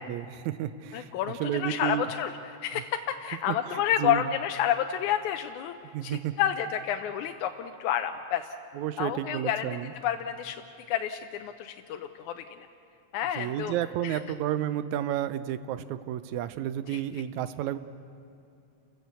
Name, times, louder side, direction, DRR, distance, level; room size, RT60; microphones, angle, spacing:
voice 1, 0.0-1.1 1.4-2.0 3.5-4.2 5.9-6.3 8.8-9.9 13.4-17.8, right 11 dB, 80° right, 13 dB, 2.0 m, -31 dB
voice 2, 0.9-5.8 6.0-8.6 9.0-9.8 10.0-12.7 13.1-13.8 14.0-14.2 16.9-17.0, left 10 dB, 85° left, 6 dB, 2.2 m, -30 dB
30.0 x 15.0 x 8.2 m, 2.6 s
omnidirectional pair, 3.4 m